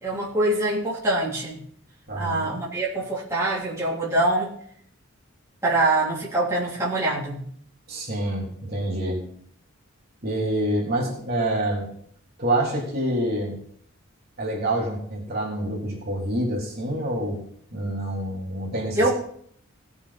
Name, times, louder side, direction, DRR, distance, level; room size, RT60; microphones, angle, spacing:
voice 1, 0.0-1.6 2.1-4.5 5.6-7.4 18.9-19.1, right 2 dB, 15° right, -8 dB, 3.3 m, -24 dB
voice 2, 2.1-2.5 7.9-9.3 10.2-11.9 12.4-13.6 14.4-17.4 17.7-19.1, right 1 dB, 45° right, -4 dB, 3.4 m, -27 dB
18.5 x 7.0 x 4.3 m, 0.64 s
head